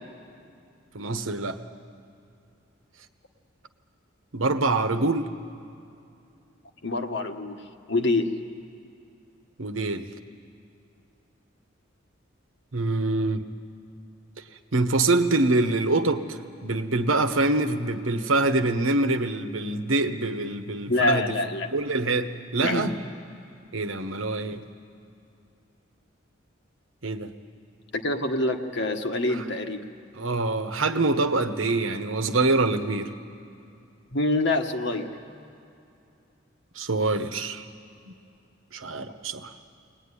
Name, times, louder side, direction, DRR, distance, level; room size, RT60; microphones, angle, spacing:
voice 1, 0.9-1.6 4.3-5.3 9.6-10.0 12.7-13.5 14.7-21.3 21.7-22.9 23.7-24.6 27.0-27.3 30.1-33.1 36.8-37.6 38.1-38.2 38.7-39.5, right 2 dB, 75° right, 8 dB, 1.2 m, -25 dB
voice 2, 6.8-7.6 7.9-8.3 20.9-21.7 22.6-23.0 27.9-29.8 34.1-35.1, left 2 dB, 60° left, 5 dB, 1.5 m, -25 dB
23.0 x 19.5 x 9.9 m, 2.6 s
head